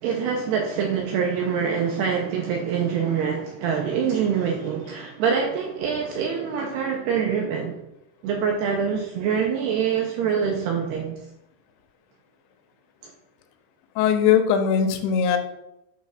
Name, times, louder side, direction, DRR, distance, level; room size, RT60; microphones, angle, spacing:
voice 1, 0.0-7.8 8.2-11.2, right 7 dB, 85° right, 1 dB, 2.3 m, -25 dB
voice 2, 14.0-15.4, left 8 dB, 85° left, 7 dB, 3.1 m, -20 dB
8.2 x 3.2 x 5.7 m, 0.87 s
omnidirectional pair, 5.3 m